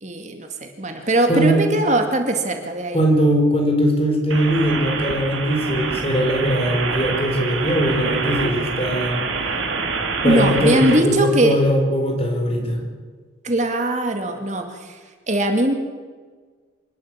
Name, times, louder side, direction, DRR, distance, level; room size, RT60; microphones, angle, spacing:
voice 1, 0.0-3.0 10.2-11.6 13.4-15.0 15.3-15.7, right 1 dB, 35° right, 5 dB, 2.1 m, -20 dB
voice 2, 0.9-1.6 2.9-9.2 10.2-12.8, equal, 30° left, 2 dB, 4.6 m, -20 dB
sound 1, 4.3-11.0, right 4 dB, 85° right, 2.8 m, -26 dB
26.0 x 12.0 x 9.8 m, 1.5 s
head